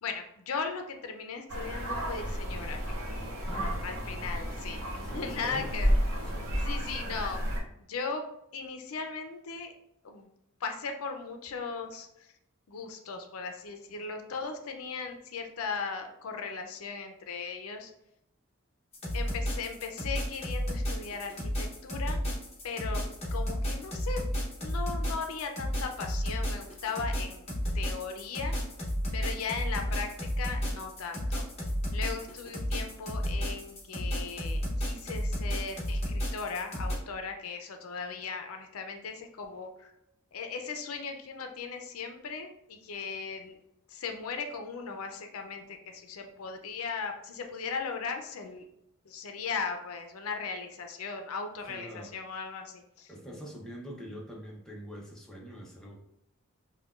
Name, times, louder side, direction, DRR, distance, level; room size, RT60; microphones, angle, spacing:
voice 1, 0.0-2.8 3.8-4.8 5.1-5.9 6.6-7.5 7.9-8.2 8.5-9.7 10.0-10.3 10.6-12.3 12.7-17.9 19.1-22.2 22.6-23.0 23.3-24.2 24.6-27.4 27.7-28.6 29.1-31.5 31.9-39.9 40.3-43.6 43.9-48.6 49.1-53.1, left 5 dB, 80° left, 5 dB, 0.5 m, -37 dB
sound 1, 1.5-7.6, equal, 70° right, 0.8 m, -32 dB
voice 2, 3.4-3.9 5.0-5.8 6.3-7.2 51.7-52.1 53.1-56.0, equal, 5° left, -3 dB, 0.6 m, -44 dB
sound 2, 18.9-36.9, equal, 30° left, 1.0 m, -32 dB
5.5 x 2.2 x 2.4 m, 0.79 s
head